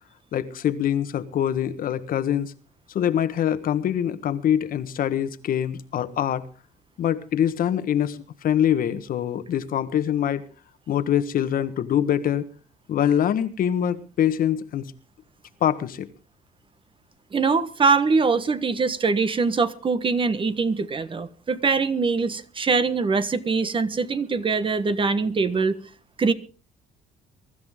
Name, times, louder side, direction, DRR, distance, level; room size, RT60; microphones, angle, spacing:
voice 1, 0.3-2.5 2.9-6.5 7.0-10.4 10.9-12.5 12.9-14.9 15.6-16.1, left 10 dB, 55° left, 1.4 m, -24 dB
voice 2, 17.3-25.8 26.2-26.3, right 4 dB, 30° right, 1.3 m, -23 dB
23.0 x 13.0 x 3.7 m
cardioid pair, 110°, 17 cm